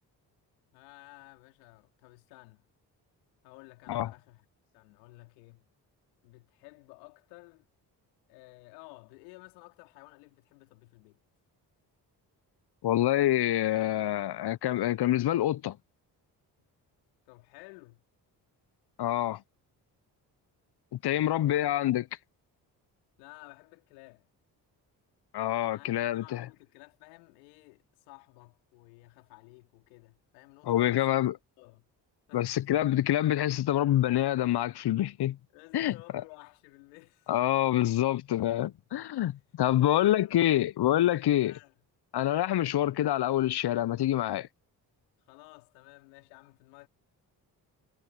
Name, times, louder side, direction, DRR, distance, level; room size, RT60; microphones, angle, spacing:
voice 1, 0.7-2.6 3.4-4.5 4.7-5.6 6.2-7.7 8.3-11.2 17.3-18.0 21.0-21.7 23.2-24.3 25.7-31.2 31.6-31.9 32.3-32.5 35.5-37.3 39.8-40.6 41.4-41.7 45.2-46.9, left 26 dB, 85° left, 3.4 m, -54 dB
voice 2, 12.8-15.8 19.0-19.4 20.9-22.0 25.3-26.5 30.7-31.4 32.3-35.4 35.7-35.9 37.3-41.5 42.1-44.5, left 13 dB, 50° left, 0.8 m, -26 dB
hypercardioid pair, 40°, 50 cm